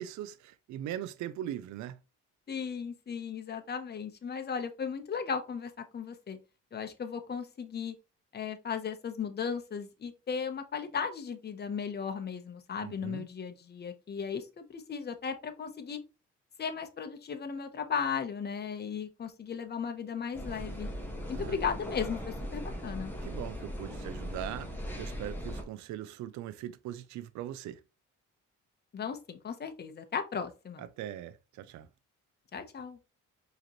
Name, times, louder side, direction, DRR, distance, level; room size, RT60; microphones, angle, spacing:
voice 1, 0.0-2.0 12.8-13.3 21.3-21.6 23.2-24.7 25.0-27.8 30.8-31.9, right 11 dB, 70° right, 0.4 m, -40 dB
voice 2, 2.5-6.4 6.7-7.9 8.3-16.0 16.6-20.9 21.3-23.1 28.9-30.8 32.5-33.0, left 6 dB, 35° left, 0.8 m, -36 dB
sound 1, 20.3-25.6, equal, 5° left, 1.4 m, -39 dB
4.8 x 3.1 x 2.9 m
cardioid pair, 90°, 30 cm